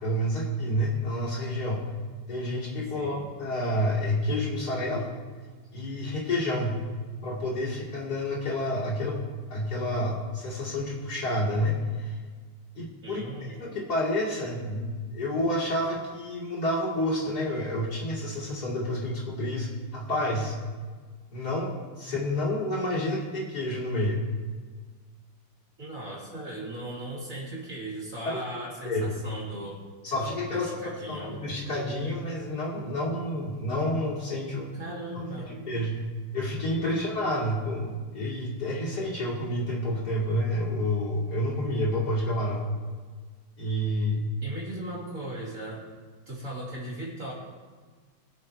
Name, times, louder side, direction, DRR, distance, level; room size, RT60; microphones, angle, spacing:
voice 1, 0.0-1.9 2.3-5.1 5.7-6.8 7.2-9.2 9.5-12.1 12.7-13.2 13.6-20.5 21.3-24.2 28.2-28.4 28.8-29.2 30.0-34.7 35.1-35.3 35.7-36.0 36.3-42.7 43.6-44.2, left 1 dB, 45° left, -6 dB, 3.1 m, -29 dB
voice 2, 13.0-13.6 25.8-29.8 30.5-31.3 34.7-35.7 44.4-45.9 46.3-47.3, right 1 dB, 40° right, -5 dB, 3.0 m, -38 dB
22.0 x 7.6 x 3.4 m, 1.5 s
omnidirectional pair, 2.4 m